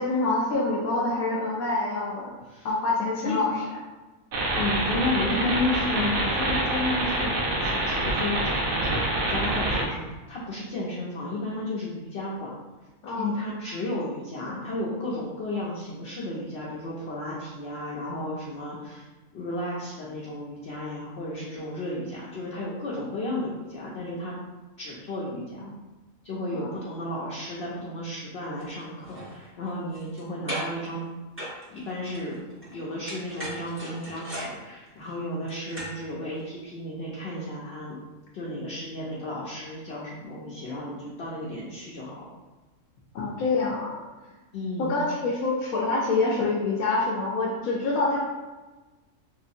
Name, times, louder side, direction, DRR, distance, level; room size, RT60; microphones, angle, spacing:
voice 1, 0.0-2.3 2.6-3.5 13.0-13.4 26.5-26.7 43.1-44.0 44.8-48.2, left 3 dB, 85° left, -4 dB, 1.0 m, -26 dB
sound 1, 4.3-9.8, right 1 dB, 90° right, 1.1 m, -26 dB
voice 2, 4.5-12.5 13.2-19.1 19.3-24.3 24.8-25.7 26.2-31.0 31.7-32.4 32.7-37.9 38.3-42.2 43.2-43.3 44.5-45.0, left 1 dB, 60° left, -5 dB, 0.7 m, -33 dB
sound 2, 28.6-28.7 29.0-30.2 30.5-30.9 31.4-32.8 33.0-36.0 36.4-36.5, equal, 10° right, 0.7 m, -38 dB
3.4 x 2.8 x 2.6 m, 1.2 s
omnidirectional pair, 1.4 m